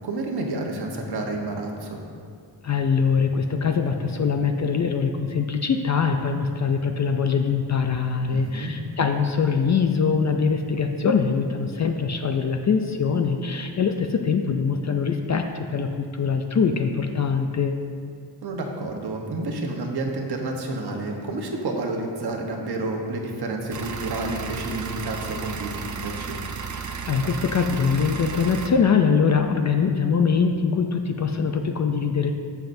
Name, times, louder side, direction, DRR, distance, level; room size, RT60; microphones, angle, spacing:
voice 1, 0.0-2.0 8.2-8.7 18.4-25.7 26.0-26.4, right 2 dB, 60° right, 1 dB, 1.2 m, -30 dB
voice 2, 2.6-17.7 27.1-32.3, left 5 dB, 40° left, 5 dB, 0.4 m, -23 dB
sound 1, 23.7-28.7, right 6 dB, 45° right, 0.6 m, -33 dB
13.0 x 7.0 x 2.6 m, 2.2 s
wide cardioid pair, 165°, 43 cm